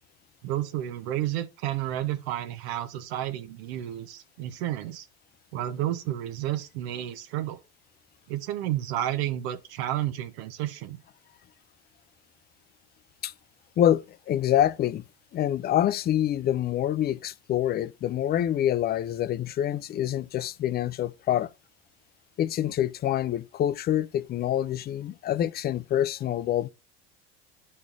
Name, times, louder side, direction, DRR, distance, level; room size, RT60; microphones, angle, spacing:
voice 1, 0.4-5.1 5.5-7.6 8.3-11.0, right 13 dB, 75° right, 0.7 m, -31 dB
voice 2, 13.8-15.0 15.3-21.5 22.4-26.7, left 11 dB, 30° left, 0.4 m, -26 dB
11.5 x 4.3 x 2.5 m
hypercardioid pair, 80°, 33 cm